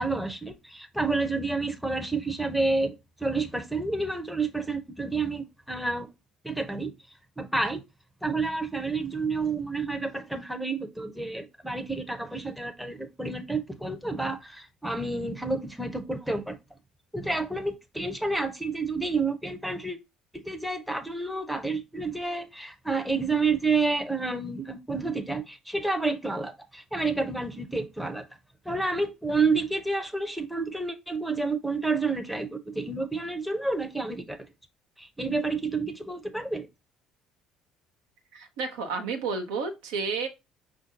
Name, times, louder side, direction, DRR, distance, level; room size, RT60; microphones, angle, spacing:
voice 1, 0.0-2.9 3.2-6.1 6.4-6.9 7.4-7.8 8.2-16.6 17.1-20.0 20.3-28.3 28.6-34.5 35.0-36.7, right 3 dB, ahead, 0.7 m, -29 dB
voice 2, 38.3-40.3, right 4 dB, 65° right, 0.8 m, -31 dB
5.5 x 2.6 x 3.7 m
figure-of-eight pair, 55°, 3 cm